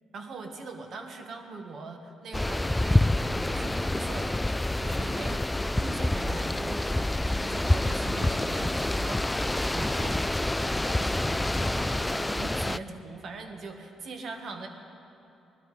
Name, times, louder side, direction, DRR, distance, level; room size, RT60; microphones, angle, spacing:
voice 1, 0.1-4.4 4.8-5.4 5.7-14.7, right 4 dB, 60° right, 4 dB, 1.6 m, -41 dB
sound 1, 2.3-12.8, left 1 dB, 10° left, 0.3 m, -27 dB
sound 2, 5.4-10.5, right 1 dB, 20° right, 3.6 m, -60 dB
Fireworks, 7.5-13.3, right 1 dB, 35° right, 2.2 m, -51 dB
20.5 x 12.5 x 5.0 m, 3.0 s
cardioid pair, 90°, 0 cm